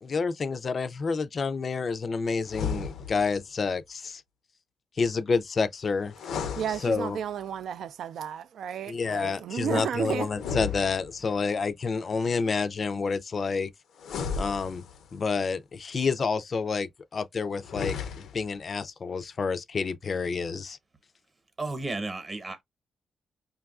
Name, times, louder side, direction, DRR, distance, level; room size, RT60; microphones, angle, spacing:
voice 1, 0.0-4.2 5.0-6.1 6.7-7.2 8.9-13.7 14.4-14.8 15.1-20.8, left 4 dB, 40° left, 0.3 m, -29 dB
sound 1, 2.4-3.4 6.1-7.4 10.3-11.5 14.0-15.2 17.6-18.6, left 6 dB, 90° left, 0.6 m, -35 dB
voice 2, 6.6-10.3, right 8 dB, 80° right, 0.3 m, -32 dB
voice 3, 21.6-22.6, right 2 dB, 30° right, 0.9 m, -33 dB
5.3 x 2.3 x 2.3 m
cardioid pair, 125°, 0 cm